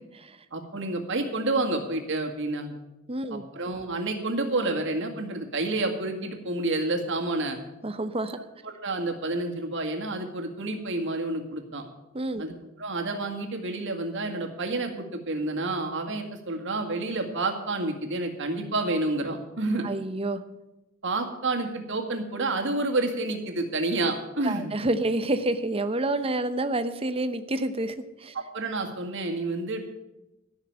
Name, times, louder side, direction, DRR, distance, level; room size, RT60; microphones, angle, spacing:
voice 1, 0.5-2.8 3.5-7.6 8.6-11.8 12.4-19.9 21.0-24.7 28.3-29.8, right 2 dB, 60° right, 3 dB, 2.0 m, -29 dB
voice 2, 3.1-3.4 7.8-8.4 12.1-12.4 19.8-20.4 24.4-27.9 28.2-28.3, right 2 dB, 25° right, 10 dB, 0.8 m, -28 dB
14.0 x 6.5 x 8.8 m, 0.97 s
head